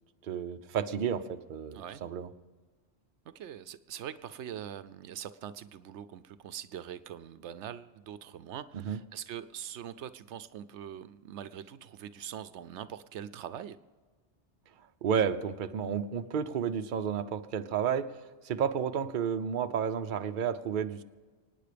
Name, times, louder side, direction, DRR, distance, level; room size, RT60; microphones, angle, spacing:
voice 1, 0.2-2.3 8.7-9.0 15.0-18.1 18.4-21.0, right 7 dB, 50° right, 8 dB, 0.8 m, -31 dB
voice 2, 3.3-13.8, right 9 dB, 80° right, 14 dB, 0.9 m, -43 dB
24.5 x 9.5 x 5.1 m, 1.3 s
omnidirectional pair, 1.2 m